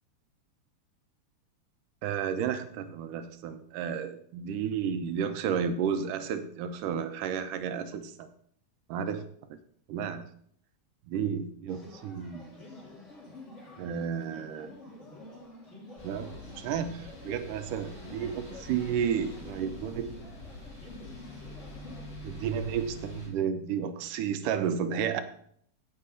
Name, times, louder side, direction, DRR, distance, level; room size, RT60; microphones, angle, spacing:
voice 1, 2.0-8.3 8.9-9.3 9.9-10.3 11.1-12.5 13.8-14.7 16.0-20.1 22.2-25.2, right 7 dB, 80° right, 9 dB, 2.4 m, -32 dB
sound 1, 11.7-22.0, left 2 dB, 20° left, 3.1 m, -49 dB
sound 2, 16.0-23.3, left 1 dB, 55° left, 7.4 m, -46 dB
16.5 x 6.9 x 3.9 m, 0.64 s
omnidirectional pair, 3.7 m